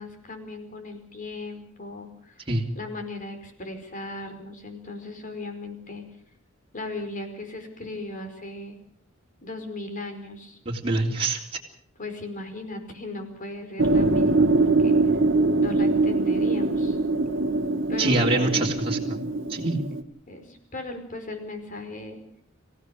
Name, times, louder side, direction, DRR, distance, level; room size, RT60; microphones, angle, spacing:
voice 1, 0.0-2.4 2.7-6.0 6.7-8.8 9.4-10.6 12.0-15.0 15.6-17.0 17.9-18.7 20.3-22.2, left 2 dB, 40° left, 6 dB, 4.9 m, -37 dB
voice 2, 10.6-11.4 18.0-19.8, right 2 dB, 30° right, -2 dB, 3.1 m, -25 dB
sound 1, 13.8-20.0, right 2 dB, 65° right, 1.6 m, -23 dB
27.0 x 16.0 x 6.7 m, 0.63 s
head